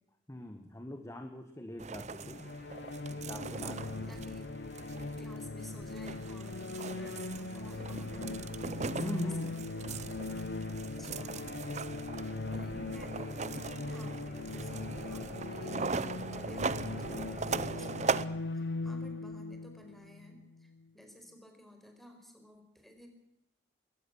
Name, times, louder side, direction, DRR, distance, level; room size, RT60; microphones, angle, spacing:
voice 1, 0.3-2.5 3.1-4.1 8.9-9.6, equal, 15° left, 7 dB, 1.5 m, -42 dB
sound 1, 1.8-18.3, right 4 dB, 40° right, 0.8 m, -39 dB
sound 2, 2.2-20.8, left 2 dB, 80° left, 0.9 m, -40 dB
voice 2, 3.7-4.5 4.9-8.7 9.0-9.9 11.0-11.5 12.4-23.1, equal, ahead, 4 dB, 5.0 m, -53 dB
21.0 x 18.5 x 7.2 m, 0.84 s
head